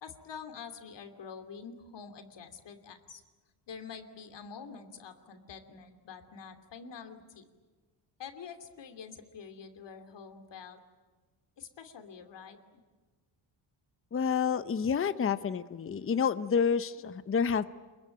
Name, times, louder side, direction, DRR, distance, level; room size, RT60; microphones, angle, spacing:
voice 1, 0.0-3.2 3.7-7.4 8.2-10.8 11.6-12.8, left 6 dB, 55° left, 8 dB, 2.9 m, -46 dB
voice 2, 14.1-17.6, left 6 dB, 25° left, 12 dB, 0.8 m, -29 dB
27.0 x 22.5 x 9.1 m, 1.3 s
cardioid pair, 120°, 49 cm